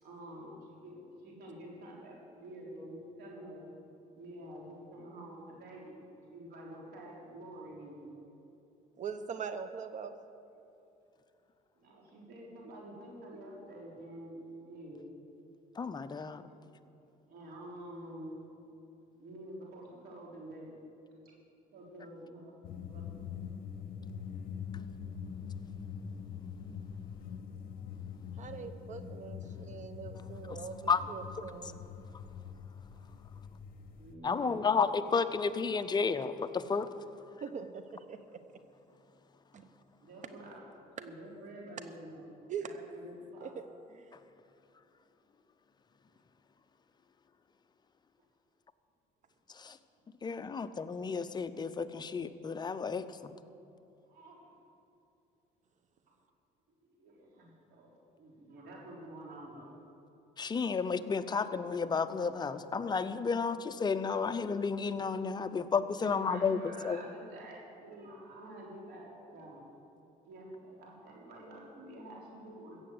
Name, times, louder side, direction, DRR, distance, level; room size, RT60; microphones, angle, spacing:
voice 1, 0.0-3.7 4.1-8.1 11.8-15.0 16.4-16.7 17.3-18.4 19.2-20.7 21.7-22.6 22.9-23.3 32.0-32.1 33.0-33.1 33.9-34.6 40.0-40.6 41.0-43.5 46.1-46.2 54.1-54.5 56.8-57.9 58.2-59.7 66.0-69.7 70.3-72.8, right 1 dB, 70° right, -3 dB, 3.8 m, -48 dB
voice 2, 9.0-10.2 28.4-31.8 37.4-37.8 38.1-38.4 39.5-39.6 42.5-42.7 43.4-43.6 43.9-44.1, right 6 dB, 45° right, 10 dB, 0.8 m, -42 dB
voice 3, 15.8-16.5 24.7-24.8 30.5-30.6 30.9-31.0 34.2-36.9 49.5-49.8 50.2-53.3 60.4-67.0, left 5 dB, 25° left, 10 dB, 0.6 m, -32 dB
sound 1, 22.6-34.1, left 7 dB, 60° left, 1.1 m, -44 dB
15.0 x 7.7 x 7.9 m, 2.8 s
cardioid pair, 110°, 17 cm